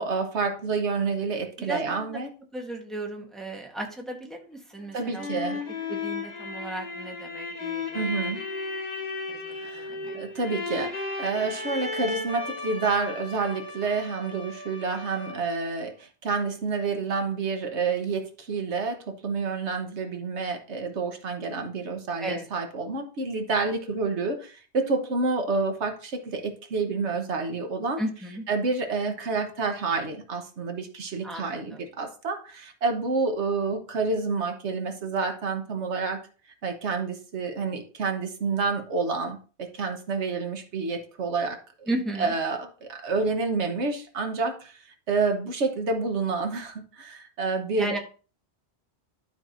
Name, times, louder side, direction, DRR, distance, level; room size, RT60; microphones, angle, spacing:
voice 1, 0.0-2.3 4.9-5.6 7.9-8.4 9.5-28.0 28.5-36.3 36.6-41.9 42.2-44.8 45.1-48.0, right 4 dB, 85° right, 5 dB, 1.4 m, -29 dB
voice 2, 1.6-5.3 5.9-8.3 9.3-10.2 22.2-22.5 28.0-28.4 31.2-31.9 41.9-42.3 47.8-48.0, right 1 dB, ahead, 2 dB, 1.1 m, -35 dB
sound 1, 4.8-15.6, left 3 dB, 40° left, 1.2 m, -35 dB
12.0 x 4.7 x 2.6 m, 0.37 s
omnidirectional pair, 1.1 m